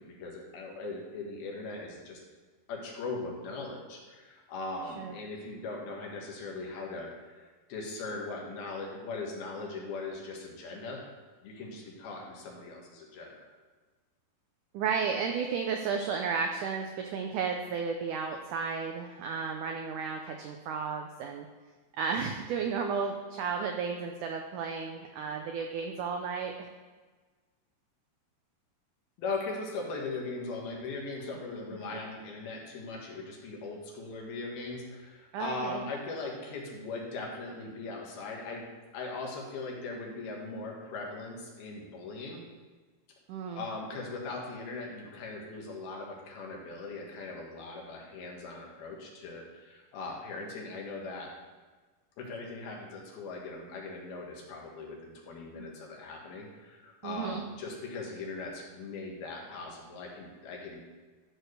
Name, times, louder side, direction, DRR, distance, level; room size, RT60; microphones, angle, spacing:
voice 1, 0.0-2.2 2.7-11.0 11.4-13.5 29.2-38.7 38.9-42.4 43.6-51.3 52.2-61.0, left 3 dB, 75° left, -1 dB, 3.5 m, -39 dB
voice 2, 14.7-21.5 22.0-26.7 35.3-35.8 43.3-43.6 55.6-55.7 57.0-57.5, right 5 dB, 85° right, 3 dB, 1.8 m, -33 dB
13.0 x 4.6 x 6.5 m, 1.3 s
omnidirectional pair, 4.5 m